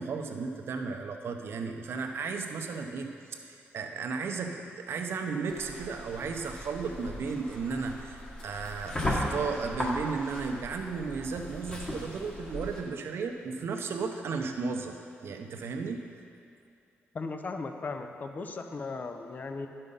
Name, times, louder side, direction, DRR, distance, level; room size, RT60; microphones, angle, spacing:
voice 1, 0.0-16.0, right 4 dB, 65° right, 5 dB, 0.8 m, -34 dB
sound 1, 5.5-12.8, left 1 dB, 25° left, 1.7 m, -37 dB
voice 2, 17.1-19.7, left 3 dB, 40° left, 6 dB, 0.6 m, -37 dB
11.0 x 5.5 x 5.5 m, 2.4 s
cardioid pair, 110°, 4 cm